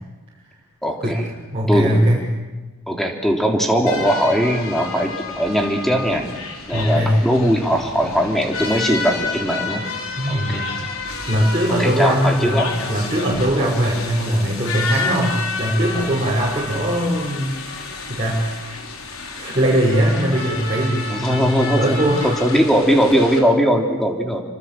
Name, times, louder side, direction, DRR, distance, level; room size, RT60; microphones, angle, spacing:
voice 1, 0.8-1.3 1.7-2.2 2.9-5.1 5.4-6.2 6.7-9.8 10.3-10.6 11.8-12.7 21.1-22.0 22.2-24.4, equal, ahead, 1 dB, 3.4 m, -19 dB
voice 2, 1.5-2.3 6.7-7.2 10.2-10.7 11.1-17.8 18.1-18.8 19.3-22.3, equal, 30° right, -6 dB, 5.9 m, -20 dB
sound 1, 3.9-23.4, left 3 dB, 85° left, 4.8 m, -30 dB
28.0 x 25.0 x 7.7 m, 1.2 s
head